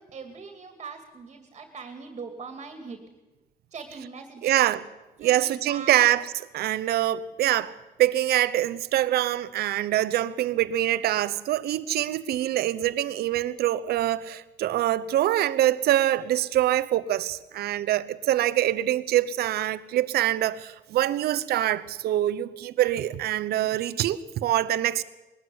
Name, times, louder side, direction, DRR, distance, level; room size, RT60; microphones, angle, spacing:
voice 1, 0.0-3.1 3.7-4.6 5.2-6.1, right 5 dB, 35° right, 2.5 m, -41 dB
voice 2, 4.4-4.8 5.2-6.2 6.5-25.0, right 13 dB, 70° right, 0.9 m, -24 dB
20.0 x 13.0 x 9.7 m
cardioid pair, 110°, 17 cm